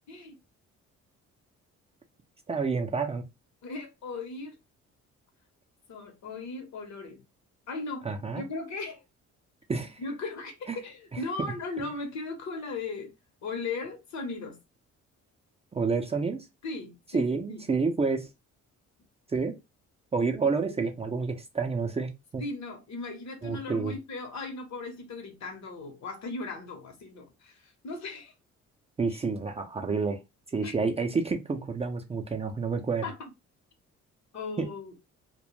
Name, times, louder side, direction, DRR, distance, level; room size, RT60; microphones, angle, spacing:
voice 1, 2.5-3.2 8.0-8.4 9.7-10.0 10.7-10.8 11.1-11.5 15.7-16.4 17.1-18.3 19.3-19.5 20.1-22.4 23.4-23.9 29.0-30.2 30.5-33.0 34.6-34.7, right 4 dB, 20° right, 0.4 m, -29 dB
voice 2, 3.6-4.6 5.9-7.2 7.7-8.1 8.4-9.0 10.0-13.1 13.4-14.6 16.6-17.6 20.6-20.8 22.4-28.3 29.1-29.2 30.6-30.8 32.9-33.1 34.3-34.9, left 3 dB, 65° left, 0.9 m, -37 dB
2.2 x 2.0 x 3.0 m
cardioid pair, 90°, 30 cm